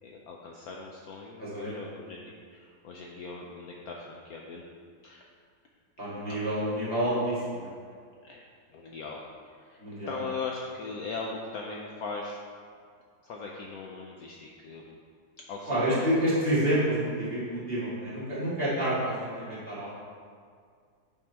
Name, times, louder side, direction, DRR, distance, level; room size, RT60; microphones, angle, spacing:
voice 1, 0.0-4.6 5.0-5.3 6.3-6.5 8.2-8.4 8.7-12.4 13.2-15.0 15.5-16.0, left 4 dB, 70° left, -1 dB, 0.9 m, -40 dB
voice 2, 1.4-1.8 6.0-7.7 9.8-10.1 15.7-19.9, right 1 dB, 30° right, -10 dB, 2.1 m, -28 dB
9.3 x 3.7 x 4.4 m, 2.1 s
omnidirectional pair, 2.0 m